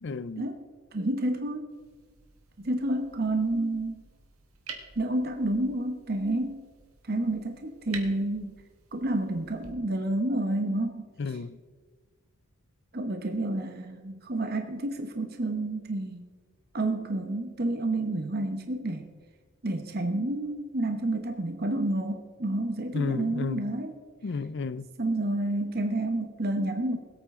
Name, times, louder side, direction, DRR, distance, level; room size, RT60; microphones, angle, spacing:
voice 1, 0.0-0.5 11.2-11.6 22.9-23.7 24.2-24.9, left 4 dB, 55° left, 0.5 m, -32 dB
voice 2, 0.9-1.7 2.6-4.0 5.0-6.6 7.1-8.6 8.9-11.1 12.9-16.2 16.7-19.1 19.6-23.9 25.0-27.0, right 1 dB, 45° right, 1.0 m, -29 dB
sound 1, 1.7-9.7, right 5 dB, 85° right, 1.7 m, -49 dB
21.0 x 8.7 x 3.7 m
head